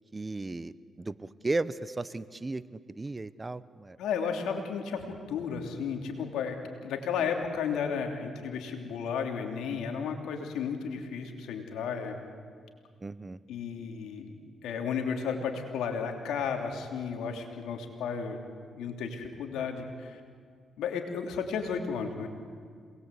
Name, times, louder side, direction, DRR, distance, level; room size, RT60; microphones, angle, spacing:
voice 1, 0.1-2.6 3.0-4.0 13.0-13.4, right 2 dB, 25° right, 16 dB, 0.9 m, -35 dB
voice 2, 4.0-6.6 6.8-12.1 13.5-14.3 14.6-18.4 18.7-20.2 20.8-22.3, left 6 dB, 85° left, 4 dB, 3.0 m, -33 dB
27.5 x 20.5 x 8.3 m, 2.1 s
cardioid pair, 70°, 0 cm